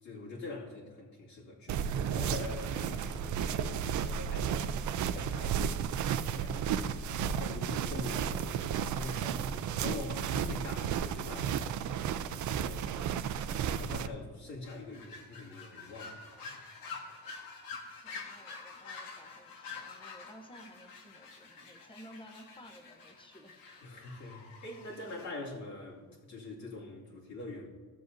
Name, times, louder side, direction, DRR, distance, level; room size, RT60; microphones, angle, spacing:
voice 1, 0.0-4.8 5.1-13.1 13.4-16.6 23.8-27.7, left 2 dB, 50° left, -4 dB, 2.3 m, -44 dB
sound 1, 1.7-14.1, right 8 dB, 55° right, 0.5 m, -33 dB
sound 2, 14.6-25.3, left 4 dB, 70° left, 1.5 m, -48 dB
voice 2, 17.9-23.6, equal, 15° left, 4 dB, 0.9 m, -54 dB
14.5 x 7.6 x 2.7 m, 1.5 s
cardioid pair, 150°, 36 cm